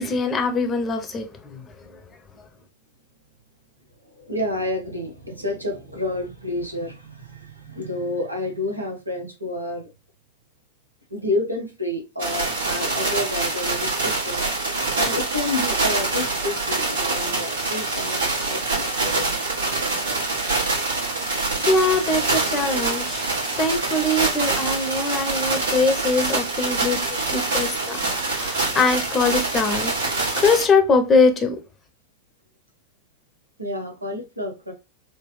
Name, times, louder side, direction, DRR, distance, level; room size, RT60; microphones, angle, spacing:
voice 1, 0.0-2.0 21.6-23.3 23.6-31.6, left 3 dB, 25° left, 0.8 m, -22 dB
voice 2, 4.0-9.9 11.1-19.3 21.8-22.0 26.2-26.3 26.7-26.8 33.6-34.7, left 2 dB, 85° right, 0.9 m, -30 dB
sound 1, 12.2-30.6, right 3 dB, 70° right, 1.4 m, -25 dB
4.3 x 2.2 x 3.2 m
figure-of-eight pair, 90°, 0 cm